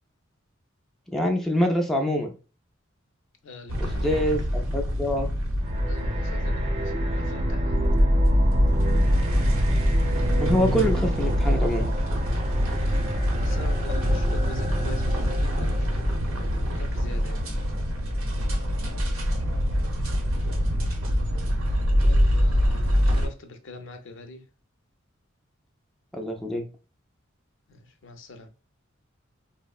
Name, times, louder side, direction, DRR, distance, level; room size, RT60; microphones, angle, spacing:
voice 1, 1.1-2.3 3.8-5.3 10.4-11.9 26.1-26.6, equal, ahead, 0.3 m, -25 dB
voice 2, 3.4-4.1 5.9-7.8 12.7-13.0 13.4-15.9 16.7-17.4 22.0-24.4 27.7-28.5, left 2 dB, 65° left, 0.5 m, -43 dB
sound 1, 3.7-23.3, equal, 80° right, 0.7 m, -24 dB
sound 2, 5.6-16.2, right 2 dB, 30° right, 0.7 m, -32 dB
3.4 x 2.0 x 2.3 m
head